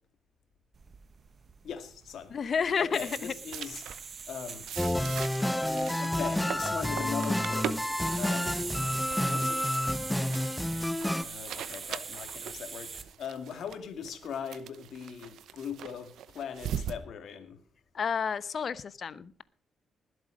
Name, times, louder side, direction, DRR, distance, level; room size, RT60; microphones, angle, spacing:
sound 1, 0.7-13.1, right 5 dB, 45° right, 1.3 m, -41 dB
voice 1, 1.6-2.3 2.8-3.8 4.3-4.7 5.5-8.8 9.3-9.7 11.2-17.6, left 7 dB, 70° left, 7 dB, 2.4 m, -40 dB
voice 2, 2.3-3.3 17.9-19.4, left 6 dB, 55° left, 16 dB, 0.8 m, -31 dB
sound 2, 3.5-4.0 4.6-17.0, right 9 dB, 80° right, 0.8 m, -41 dB
sound 3, 4.8-11.2, left 1 dB, 5° left, 0.8 m, -29 dB
20.0 x 8.0 x 5.2 m, 0.44 s
cardioid pair, 80°, 0 cm